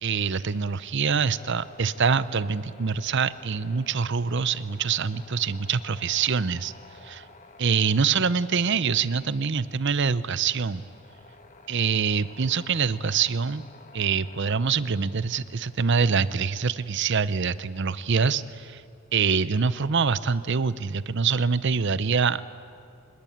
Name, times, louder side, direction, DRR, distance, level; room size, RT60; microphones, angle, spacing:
voice 1, 0.0-6.7 7.0-7.2 7.6-10.8 11.7-13.6 13.9-18.8 19.1-22.4, right 5 dB, 55° right, 16 dB, 0.7 m, -25 dB
sound 1, 1.2-15.8, left 3 dB, 35° left, 1.4 m, -52 dB
25.5 x 21.5 x 8.7 m, 2.4 s
head